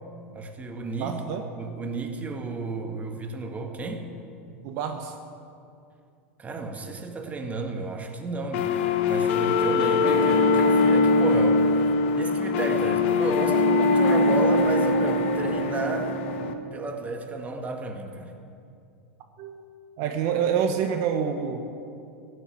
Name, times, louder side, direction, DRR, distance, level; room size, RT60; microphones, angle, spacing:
voice 1, 0.3-4.1 6.4-11.6 12.1-18.3, right 3 dB, 20° right, 4 dB, 1.8 m, -33 dB
voice 2, 1.0-1.4 4.6-5.1 19.4-19.6 20.0-21.6, right 7 dB, 55° right, 6 dB, 1.1 m, -27 dB
sound 1, 8.5-16.5, left 3 dB, 65° left, 1.3 m, -22 dB
15.0 x 8.1 x 9.2 m, 2.6 s
hypercardioid pair, 105°, 7 cm